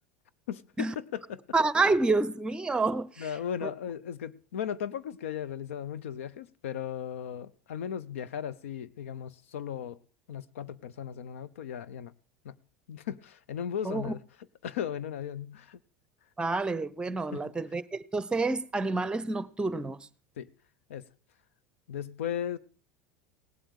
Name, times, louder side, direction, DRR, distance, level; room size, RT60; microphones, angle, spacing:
voice 1, 0.5-1.4 3.2-10.0 10.3-12.1 12.4-12.5 12.9-14.2 14.6-15.8 17.3-17.5 20.4-20.5 20.9-21.1 21.9-22.6, left 9 dB, 85° left, 0.8 m, -36 dB
voice 2, 1.5-3.3 3.6-3.7 13.8-14.1 16.4-20.1, right 3 dB, 15° right, 0.9 m, -28 dB
18.0 x 8.0 x 6.5 m
hypercardioid pair, 100°, 7 cm